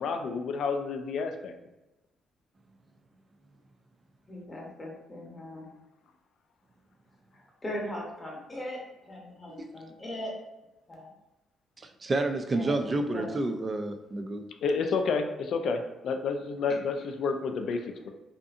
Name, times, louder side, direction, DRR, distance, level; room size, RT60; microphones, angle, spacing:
voice 1, 0.0-1.5 14.6-18.1, left 4 dB, 70° left, 6 dB, 0.3 m, -30 dB
voice 2, 4.3-5.8 7.3-10.3 10.9-11.1 12.5-13.4, left 1 dB, 25° left, -2 dB, 0.8 m, -39 dB
voice 3, 11.8-14.5, right 2 dB, 30° right, 6 dB, 0.3 m, -30 dB
2.6 x 2.5 x 2.4 m, 0.98 s
cardioid pair, 90°, 0 cm